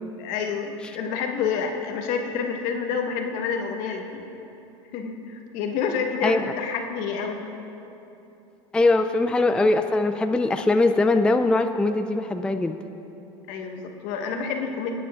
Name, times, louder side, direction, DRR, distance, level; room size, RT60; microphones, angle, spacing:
voice 1, 0.2-4.2 4.9-7.5 13.5-14.9, left 6 dB, 60° left, 3 dB, 1.2 m, -28 dB
voice 2, 8.7-12.8, left 2 dB, 5° left, 7 dB, 0.3 m, -21 dB
19.0 x 9.2 x 2.5 m, 2.9 s
hypercardioid pair, 95°, 16 cm